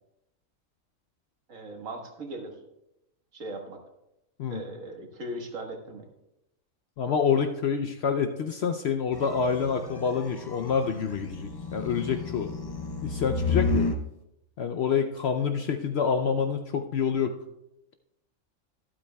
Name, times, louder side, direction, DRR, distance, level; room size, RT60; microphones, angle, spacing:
voice 1, 1.5-2.6 3.3-3.8 4.5-6.1, right 1 dB, 65° right, 2 dB, 1.8 m, -38 dB
voice 2, 7.0-12.5 13.0-13.9 14.6-17.3, left 6 dB, 65° left, 7 dB, 0.7 m, -27 dB
sound 1, 9.1-14.0, left 3 dB, 30° left, 0.4 m, -31 dB
12.5 x 12.0 x 2.2 m, 0.87 s
omnidirectional pair, 1.5 m